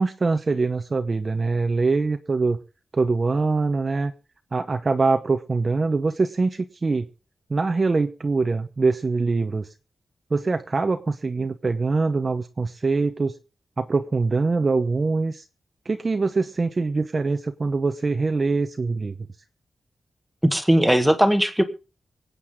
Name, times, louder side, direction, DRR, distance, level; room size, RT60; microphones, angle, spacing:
voice 1, 0.0-2.6 2.9-4.1 4.5-7.1 7.5-9.7 10.3-13.3 13.8-15.4 15.9-19.1, right 3 dB, 40° right, 8 dB, 0.9 m, -23 dB
voice 2, 20.4-21.6, equal, 5° right, 9 dB, 1.6 m, -18 dB
25.0 x 8.4 x 3.7 m, 0.33 s
wide cardioid pair, 105°, 0 cm